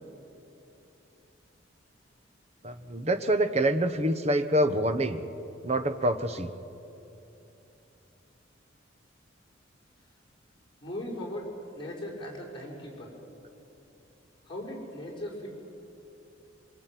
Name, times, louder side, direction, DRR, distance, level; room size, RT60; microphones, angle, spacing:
voice 1, 2.6-5.2 5.6-6.5, right 1 dB, 35° right, 9 dB, 1.1 m, -26 dB
voice 2, 10.8-13.2 14.4-15.6, left 1 dB, 25° left, -3 dB, 5.7 m, -38 dB
24.5 x 22.0 x 9.3 m, 3.0 s
head